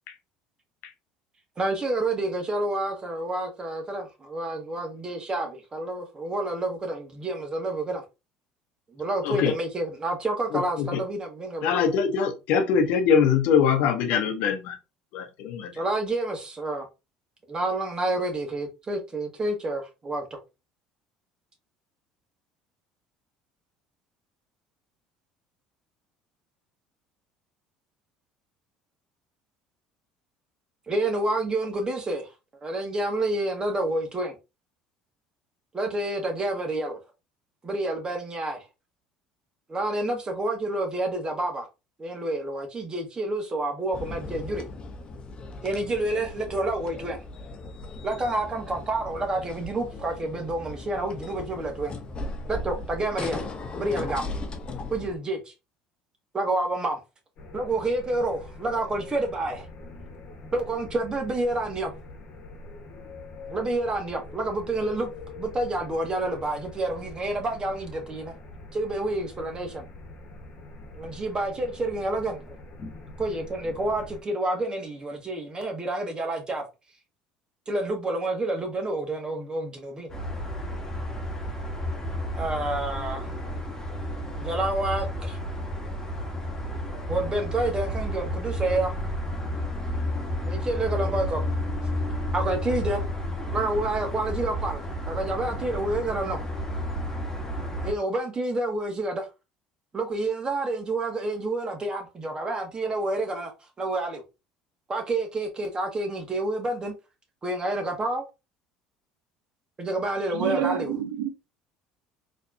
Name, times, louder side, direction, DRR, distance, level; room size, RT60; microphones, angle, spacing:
voice 1, 1.6-8.0 8.9-11.7 15.7-16.9 17.5-20.2 30.9-32.3 32.6-34.3 35.7-37.0 37.6-38.6 39.7-41.7 42.0-44.6 45.6-47.2 48.0-51.9 52.5-53.4 53.8-54.3 54.9-55.5 56.3-57.0 57.5-59.7 60.5-61.9 63.5-65.1 65.3-68.3 68.7-69.8 71.0-72.6 73.2-76.6 77.7-80.1 82.4-83.3 84.4-85.4 87.1-88.9 90.4-91.4 92.3-93.1 93.5-96.4 97.8-99.3 99.9-103.5 103.8-104.2 104.9-106.9 107.4-108.2 109.8-110.9, right 2 dB, 30° right, 1.6 m, -29 dB
voice 2, 9.2-9.6 10.5-11.0 11.6-14.8 15.1-15.7, left 7 dB, 70° left, 0.8 m, -23 dB
sound 1, 43.9-55.1, left 2 dB, 35° left, 0.9 m, -37 dB
sound 2, 57.4-74.2, left 2 dB, 55° left, 1.2 m, -44 dB
sound 3, 80.1-97.9, equal, 20° left, 1.5 m, -31 dB
voice 3, 110.3-111.3, right 10 dB, 80° right, 0.5 m, -28 dB
4.1 x 3.2 x 2.7 m
hypercardioid pair, 75°, 3 cm